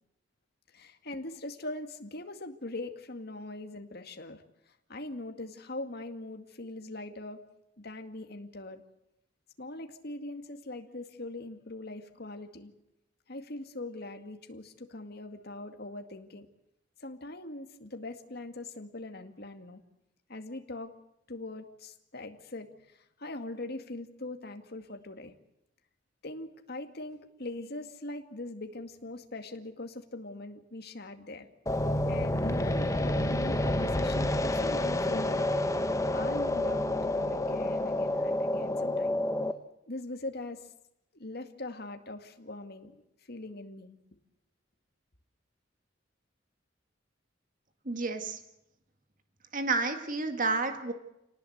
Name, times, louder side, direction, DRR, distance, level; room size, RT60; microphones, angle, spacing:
voice 1, 0.7-4.4 4.9-7.4 7.8-8.8 9.6-12.7 13.3-16.5 17.0-19.8 20.3-20.9 21.3-25.3 26.2-31.5 32.1-35.5 36.1-39.2 39.9-40.7 41.1-42.9 43.3-44.0, left 2 dB, 55° left, 6 dB, 2.1 m, -41 dB
sound 1, 31.7-39.5, left 1 dB, 15° left, 1.1 m, -29 dB
voice 2, 47.9-48.4 49.5-50.9, right 3 dB, 45° right, 7 dB, 1.9 m, -30 dB
27.5 x 18.5 x 8.0 m, 0.86 s
head